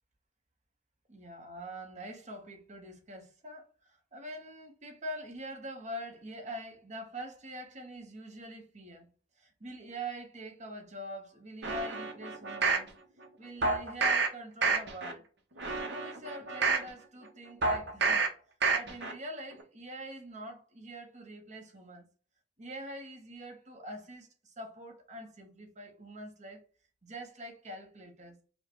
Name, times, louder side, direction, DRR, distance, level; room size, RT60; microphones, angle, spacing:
voice 1, 1.1-9.1 9.4-12.9 13.4-15.2 15.8-18.3 18.7-22.0 22.6-26.6 27.0-28.4, right 1 dB, 40° right, 1.1 m, -44 dB
sound 1, 11.6-12.9 13.6-14.3 14.6-15.1 15.6-16.9 17.6-18.3 18.6-19.1 19.5-19.6, right 4 dB, 65° right, 0.9 m, -29 dB
5.5 x 2.3 x 3.0 m
head